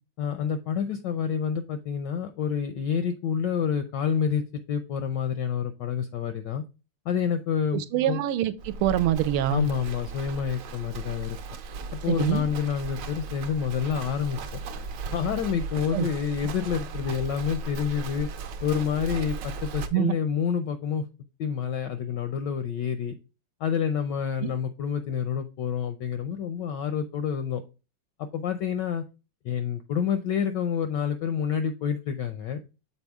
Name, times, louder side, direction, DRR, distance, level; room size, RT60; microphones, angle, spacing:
voice 1, 0.2-6.6 7.1-8.2 9.5-11.4 11.9-14.6 15.1-18.3 18.6-21.0 21.4-23.1 23.6-27.6 28.3-29.0 29.4-32.6, left 7 dB, 75° left, 1.0 m, -28 dB
voice 2, 7.7-9.7 12.1-12.5 15.9-16.1 19.9-20.2 24.4-24.6, right 12 dB, 85° right, 1.5 m, -25 dB
Livestock farm animals working animals, 8.6-19.9, right 4 dB, 70° right, 1.2 m, -37 dB
7.0 x 4.1 x 3.4 m
omnidirectional pair, 2.4 m